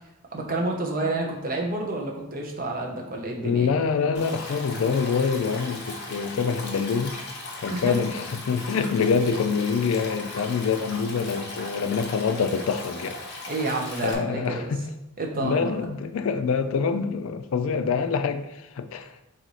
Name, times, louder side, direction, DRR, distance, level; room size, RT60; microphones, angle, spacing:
voice 1, 0.3-3.7 7.7-8.0 13.5-14.7 15.2-15.8, right 2 dB, 40° right, 0.7 m, -29 dB
voice 2, 3.4-7.2 7.6-13.2 14.0-14.9 15.4-19.2, left 5 dB, 70° left, 0.4 m, -25 dB
Stream, 4.1-14.1, left 2 dB, 50° left, 0.8 m, -38 dB
4.0 x 2.7 x 4.7 m
head